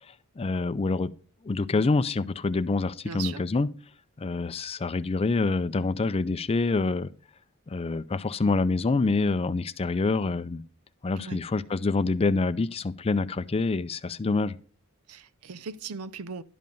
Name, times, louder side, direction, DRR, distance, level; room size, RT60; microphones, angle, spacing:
voice 1, 0.4-1.1 1.4-3.7 4.2-7.1 7.7-10.6 11.0-14.6, left 3 dB, 25° left, 0.4 m, -26 dB
voice 2, 3.1-3.4 11.2-11.4 15.1-16.4, right 5 dB, 80° right, 0.6 m, -38 dB
11.5 x 5.4 x 5.3 m
head